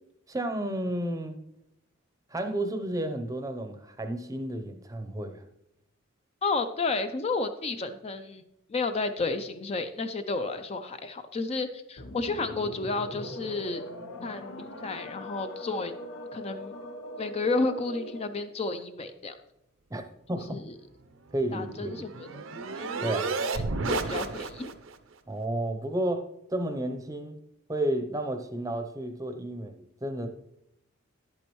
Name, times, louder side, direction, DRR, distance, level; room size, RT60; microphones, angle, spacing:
voice 1, 0.3-1.3 2.3-5.5 19.9-20.0 20.3-20.6 21.3-22.0 23.0-23.3 25.3-27.3 27.7-30.3, right 1 dB, 15° right, 7 dB, 0.7 m, -32 dB
voice 2, 6.4-8.4 8.7-13.8 14.2-14.5 14.8-15.9 16.3-16.7 17.2-19.4 20.4-20.7 21.5-22.3 22.7-24.7, left 3 dB, 30° left, 8 dB, 0.4 m, -32 dB
sound 1, 12.0-18.4, left 1 dB, 70° left, 1.0 m, -41 dB
sound 2, 21.3-24.9, right 3 dB, 75° right, 0.7 m, -32 dB
10.5 x 8.5 x 3.1 m, 0.81 s
head